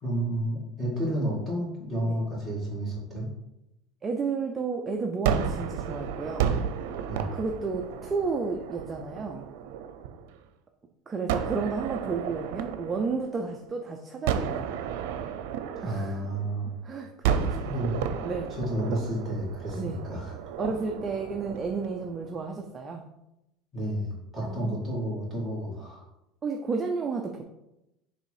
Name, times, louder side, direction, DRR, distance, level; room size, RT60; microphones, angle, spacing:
voice 1, 0.0-3.3 7.1-7.3 15.8-16.7 17.6-18.0 18.5-20.4 23.7-26.0, right 1 dB, 5° left, -7 dB, 2.4 m, -31 dB
voice 2, 4.0-6.6 7.3-9.5 11.1-14.7 15.8-16.2 16.8-17.7 18.2-18.6 19.7-20.0 20.6-23.0 24.4-24.8 26.4-27.4, right 4 dB, 15° right, 2 dB, 0.4 m, -32 dB
Gunshot gunfire, 5.2-10.4 11.3-13.7 14.3-16.7 17.2-22.4, right 8 dB, 90° right, 0.5 m, -32 dB
6.7 x 3.4 x 4.8 m, 0.88 s
cardioid pair, 175°, 0 cm